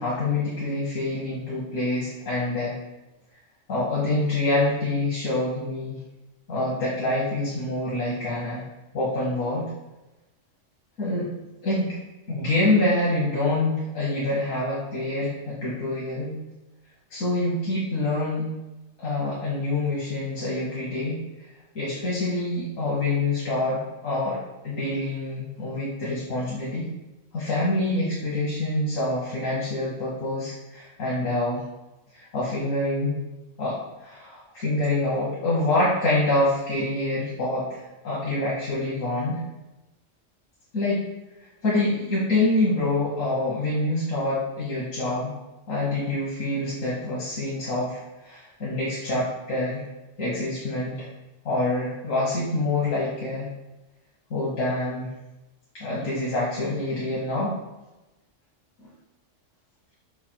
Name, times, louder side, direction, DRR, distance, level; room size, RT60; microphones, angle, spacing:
voice 1, 0.0-2.7 3.7-5.9 6.5-8.6 8.9-9.7 11.0-11.3 11.6-12.0 12.3-16.4 17.1-18.5 19.0-21.2 21.7-24.4 24.6-26.9 27.3-31.6 32.1-33.2 33.6-39.4 40.7-41.0 41.6-45.3 45.7-49.8 50.2-51.1 51.4-53.5 54.3-55.1 55.7-57.5, left 2 dB, 90° left, -7 dB, 1.4 m, -26 dB
4.8 x 2.2 x 4.4 m, 1.0 s
omnidirectional pair, 1.3 m